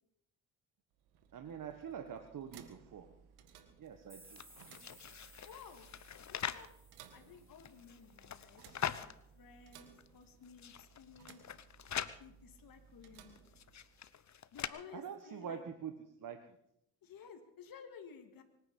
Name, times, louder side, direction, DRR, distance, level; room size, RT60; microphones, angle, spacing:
sound 1, 0.9-14.2, right 8 dB, 85° right, 1.7 m, -61 dB
voice 1, 1.3-3.1 3.8-4.4 14.9-15.9 16.2-16.6, right 7 dB, 55° right, 6 dB, 1.6 m, -45 dB
sound 2, 4.1-8.8, right 2 dB, 5° right, 5.1 m, -62 dB
sound 3, 4.2-6.7 7.4-9.1 9.7-9.8 10.0-10.1 10.4-12.2 13.0-14.7, left 9 dB, 45° left, 1.0 m, -43 dB
voice 2, 5.5-5.9 6.3-6.7 7.1-8.6 8.9-11.4 12.2-13.6 14.5-15.6 17.0-18.4, left 7 dB, 60° left, 5 dB, 2.2 m, -55 dB
24.5 x 9.8 x 5.5 m, 0.77 s
supercardioid pair, 55°, 38 cm